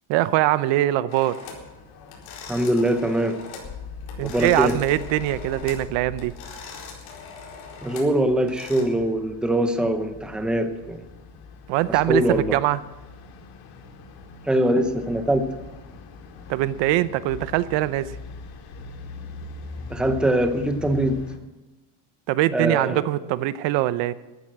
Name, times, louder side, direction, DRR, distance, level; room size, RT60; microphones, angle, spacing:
voice 1, 0.1-1.4 4.2-6.3 11.7-12.8 16.5-18.1 22.3-24.1, right 15 dB, 70° right, 15 dB, 0.8 m, -22 dB
sound 1, 1.1-1.7 2.1-3.7 4.0-5.9 6.2-8.8, left 5 dB, 70° left, 4.4 m, -41 dB
sound 2, 1.4-21.4, left 4 dB, 90° left, 2.6 m, -43 dB
voice 2, 2.5-3.4 4.2-4.8 7.8-11.0 12.1-12.6 14.4-15.5 19.9-21.2 22.5-23.1, right 1 dB, ahead, 7 dB, 0.9 m, -22 dB
sound 3, 3.6-6.2, left 5 dB, 35° left, 5.0 m, -39 dB
14.0 x 11.5 x 7.4 m, 1.1 s
cardioid pair, 160°, 46 cm